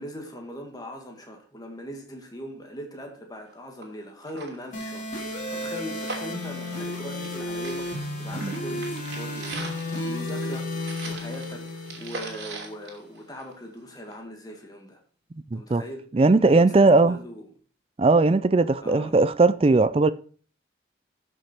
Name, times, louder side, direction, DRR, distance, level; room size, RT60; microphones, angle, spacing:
voice 1, 0.0-15.0 15.5-16.1 16.4-17.5 18.8-19.2, equal, 20° left, 1.9 m, -40 dB
sound 1, 3.5-3.6 3.8-3.9 4.2-7.4 7.6-13.7 14.1-14.2, right 3 dB, 60° right, 2.9 m, -41 dB
sound 2, 4.7-12.7, left 1 dB, 40° left, 2.7 m, -33 dB
voice 2, 15.5-15.8 16.1-17.2 18.0-20.1, right 3 dB, 30° right, 0.4 m, -19 dB
13.0 x 6.3 x 4.4 m
head